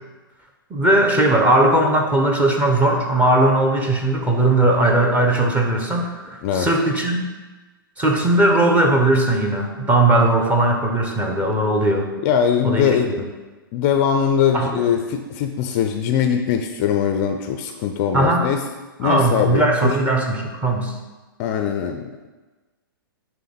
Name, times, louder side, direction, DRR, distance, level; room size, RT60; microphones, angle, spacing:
voice 1, 0.7-7.2 8.0-12.1 12.6-13.3 14.5-14.8 18.1-18.4 19.0-20.9, right 1 dB, 10° right, 1 dB, 1.0 m, -18 dB
voice 2, 12.2-13.1 13.7-18.6 19.0-20.0 21.4-22.3, left 8 dB, 35° left, 6 dB, 0.6 m, -21 dB
9.1 x 3.6 x 6.9 m, 1.2 s
figure-of-eight pair, 115°, 12 cm